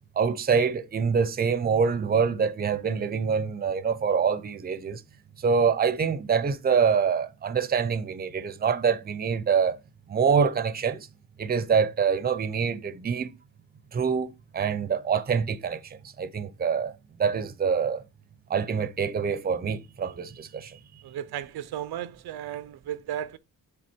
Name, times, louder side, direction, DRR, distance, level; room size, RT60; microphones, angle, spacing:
voice 1, 0.2-5.0 5.4-9.8 10.1-11.1 11.4-13.3 13.9-15.8 16.2-16.9 17.2-18.0 18.5-20.7, right 6 dB, 25° right, 0.5 m, -25 dB
voice 2, 21.0-23.4, right 10 dB, 85° right, 0.5 m, -35 dB
7.7 x 3.4 x 4.3 m
wide cardioid pair, 145°, 37 cm